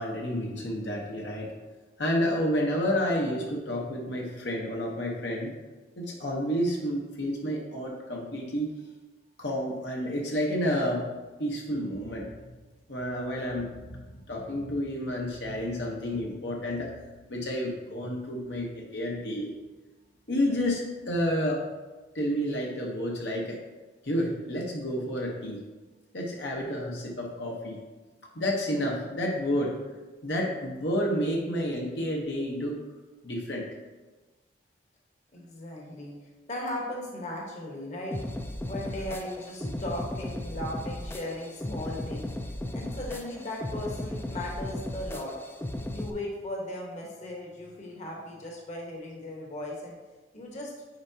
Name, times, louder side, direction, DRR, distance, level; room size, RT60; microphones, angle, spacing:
voice 1, 0.0-1.5 2.0-5.5 6.0-8.7 9.4-11.1 11.4-12.5 12.9-16.9 17.3-19.5 20.3-21.6 22.1-23.6 24.0-25.6 26.1-27.8 28.3-29.8 30.2-32.8 33.2-33.7 39.6-39.7, equal, 70° left, -1 dB, 1.1 m, -30 dB
voice 2, 35.3-36.2 36.5-38.2 38.7-42.3 42.7-45.4 45.9-49.9 50.3-50.7, left 1 dB, 45° left, -1 dB, 1.2 m, -37 dB
sound 1, 38.1-46.1, left 1 dB, 15° left, 0.4 m, -36 dB
9.3 x 4.6 x 2.8 m, 1.2 s
head